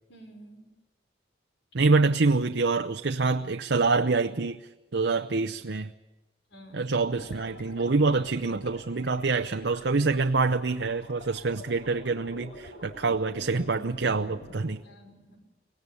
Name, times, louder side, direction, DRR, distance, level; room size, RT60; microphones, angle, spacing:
voice 1, 0.1-0.7 6.5-6.9 14.8-15.4, right 1 dB, 85° left, 5.5 m, -50 dB
voice 2, 1.7-4.6 4.9-5.9 6.7-14.8, right 3 dB, 75° right, 0.7 m, -26 dB
sound 1, 6.9-14.7, equal, 65° left, 6.0 m, -47 dB
24.5 x 17.5 x 9.7 m
head